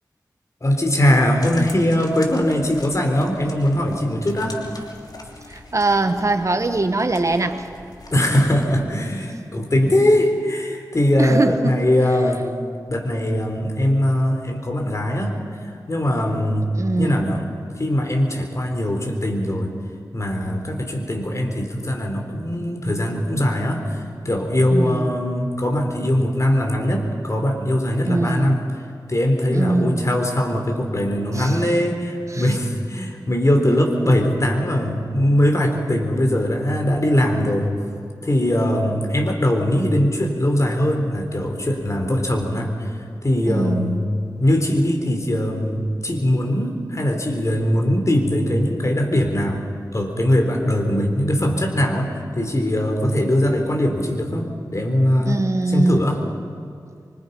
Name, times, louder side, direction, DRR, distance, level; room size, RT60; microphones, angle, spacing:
voice 1, 0.6-4.6 8.1-12.5 12.9-15.4 15.9-16.7 17.0-17.4 17.8-19.7 20.1-28.6 29.1-37.7 38.2-42.9 43.2-44.0 44.4-49.6 49.9-55.4 55.7-56.2, left 1 dB, 45° left, 3 dB, 3.9 m, -21 dB
sound 1, 1.4-8.8, left 2 dB, 65° left, 3.0 m, -41 dB
voice 2, 5.5-7.6 11.2-11.8 12.3-12.4 16.7-17.4 24.7-25.1 28.0-28.6 29.5-30.2 31.3-31.6 32.3-32.5 43.5-44.0 55.3-56.0, right 2 dB, 45° right, 8 dB, 1.3 m, -22 dB
25.0 x 24.0 x 5.6 m, 2.3 s
cardioid pair, 45°, 7 cm